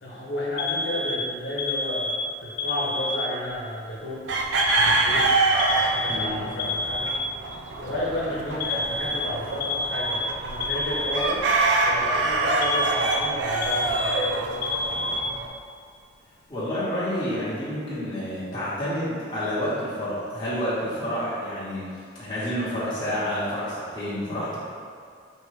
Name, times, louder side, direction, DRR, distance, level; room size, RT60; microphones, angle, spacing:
voice 1, 0.0-4.2 4.7-5.3 5.8-7.1 7.8-11.4 11.8-14.4, left 1 dB, 70° left, -7 dB, 1.0 m, -32 dB
Alarm, 0.6-3.5 4.6-7.6 8.6-11.6 12.6-15.6, left 2 dB, 50° left, 0.3 m, -29 dB
sound 1, 4.3-15.5, right 3 dB, 70° right, 0.4 m, -26 dB
voice 2, 6.1-6.4 16.5-21.9 22.2-24.6, equal, 25° left, -11 dB, 1.3 m, -29 dB
4.8 x 2.9 x 3.2 m, 2.1 s
head